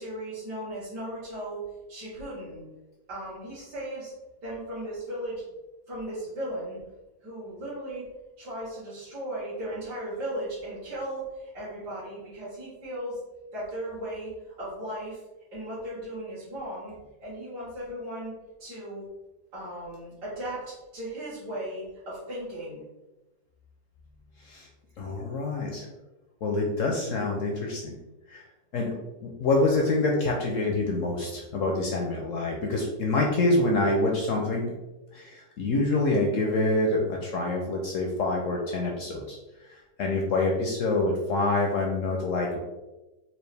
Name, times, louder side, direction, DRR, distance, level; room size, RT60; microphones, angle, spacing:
voice 1, 0.0-1.6 1.9-2.6 3.1-4.1 4.4-5.4 5.9-6.8 7.2-8.1 8.4-13.2 13.5-14.3 14.6-15.2 15.5-16.9 17.2-18.3 18.6-19.0 19.5-22.8, right 1 dB, 75° right, -10 dB, 1.8 m, -36 dB
voice 2, 25.0-25.9 26.4-28.0 28.3-28.4 28.7-34.7 35.1-39.4 39.7-42.6, left 2 dB, 70° left, 0 dB, 0.7 m, -26 dB
4.4 x 2.4 x 3.3 m, 1.1 s
omnidirectional pair, 1.9 m